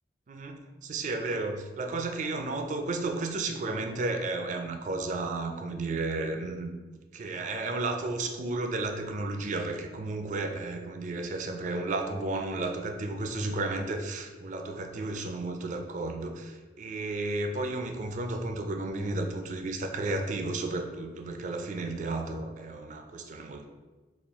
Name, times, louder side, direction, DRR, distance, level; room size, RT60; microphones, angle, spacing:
voice 1, 0.3-23.7, right 2 dB, 45° right, 5 dB, 0.4 m, -33 dB
4.2 x 2.3 x 3.4 m, 1.2 s
head